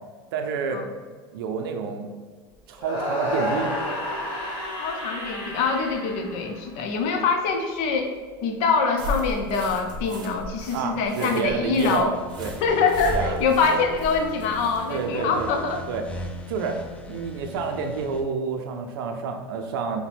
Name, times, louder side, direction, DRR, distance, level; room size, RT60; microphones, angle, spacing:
voice 1, 0.3-0.8 1.3-2.1 2.7-3.7 10.7-12.5 13.1-13.4 14.9-15.5 15.9-16.0 16.5-16.8 17.1-20.0, right 5 dB, 80° right, 5 dB, 0.5 m, -29 dB
sound 1, 2.8-7.0, equal, 40° left, 1.3 m, -30 dB
voice 2, 4.8-8.1 8.4-12.1 12.6-15.8, left 4 dB, 65° left, 5 dB, 0.6 m, -24 dB
sound 2, 9.0-15.0, equal, 35° right, 0.7 m, -36 dB
sound 3, 12.1-18.2, left 1 dB, 10° left, 0.5 m, -38 dB
4.9 x 2.2 x 3.4 m, 1.5 s
hypercardioid pair, 95°, 12 cm